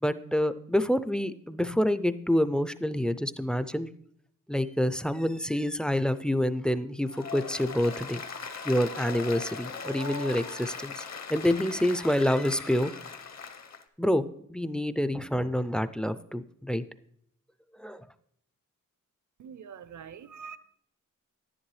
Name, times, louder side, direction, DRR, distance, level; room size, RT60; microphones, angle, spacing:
voice 1, 0.0-3.9 4.5-8.2 8.6-11.0 11.3-13.0 14.0-16.8 17.8-18.1, left 1 dB, 5° left, 0.3 m, -27 dB
Applause, 7.1-13.8, left 5 dB, 55° left, 0.8 m, -39 dB
voice 2, 19.4-20.6, right 7 dB, 65° right, 0.6 m, -44 dB
10.5 x 10.0 x 3.1 m
wide cardioid pair, 90°, 33 cm